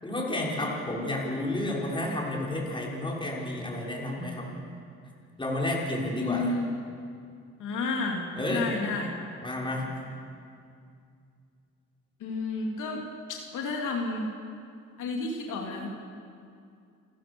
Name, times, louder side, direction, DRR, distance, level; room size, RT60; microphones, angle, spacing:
voice 1, 0.0-4.5 5.4-6.5 8.4-8.7 9.4-9.9, left 1 dB, 15° left, -3 dB, 6.0 m, -31 dB
voice 2, 6.2-6.7 7.6-8.2 8.5-9.1 12.2-13.0 13.3-14.3 15.0-15.9, left 3 dB, 85° left, 0 dB, 2.9 m, -31 dB
29.5 x 14.0 x 7.1 m, 2.4 s
cardioid pair, 90°, 30 cm